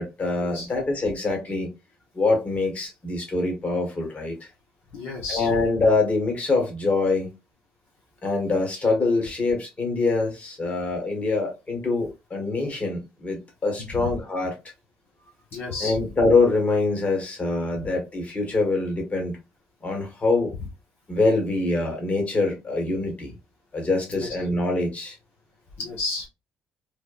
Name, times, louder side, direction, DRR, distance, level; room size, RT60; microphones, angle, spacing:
voice 1, 0.0-1.7 2.1-4.3 5.3-7.3 8.2-14.5 15.8-19.4 19.8-20.5 21.1-23.3 23.7-25.2, left 3 dB, 35° left, 1.5 m, -24 dB
voice 2, 4.9-5.5 13.9-14.2 15.5-16.0 24.1-24.3 25.8-26.3, left 3 dB, 65° left, 1.0 m, -32 dB
3.3 x 2.2 x 2.4 m
supercardioid pair, 65°, 4 cm